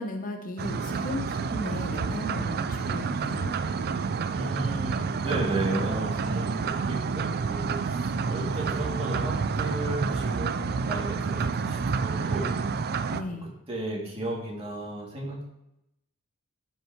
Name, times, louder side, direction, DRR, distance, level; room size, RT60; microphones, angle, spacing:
voice 1, 0.0-3.5 13.1-13.5, left 1 dB, 40° left, 4 dB, 0.7 m, -35 dB
sound 1, 0.6-13.2, right 5 dB, 45° right, 0.4 m, -29 dB
voice 2, 4.3-12.6 13.3-15.4, right 1 dB, 25° right, -3 dB, 2.3 m, -34 dB
12.0 x 5.6 x 3.0 m, 0.82 s
head